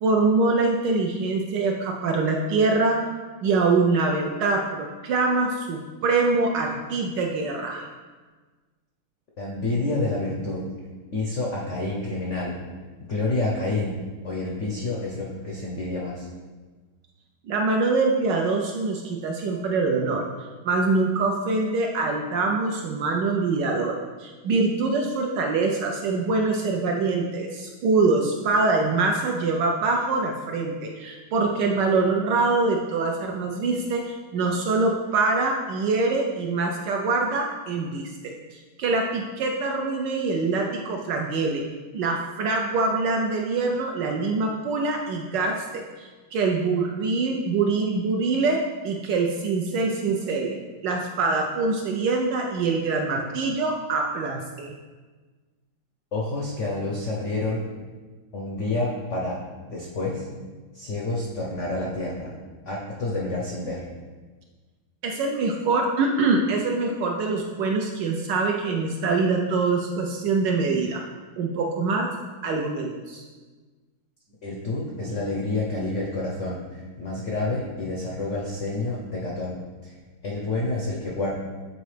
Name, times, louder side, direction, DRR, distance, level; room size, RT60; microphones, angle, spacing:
voice 1, 0.0-3.0 3.4-7.9 17.5-20.3 20.6-41.6 41.9-50.5 50.8-54.7 65.0-71.0 71.4-72.1 72.4-73.2, right 3 dB, 75° right, 1 dB, 1.0 m, -24 dB
voice 2, 9.4-10.6 11.1-12.6 13.1-16.3 56.1-57.6 58.3-59.4 59.7-60.3 60.7-62.3 62.7-63.9 74.4-79.6 79.8-80.0 80.2-81.3, left 2 dB, 75° left, -3 dB, 0.6 m, -28 dB
7.9 x 4.0 x 3.2 m, 1.4 s
omnidirectional pair, 2.3 m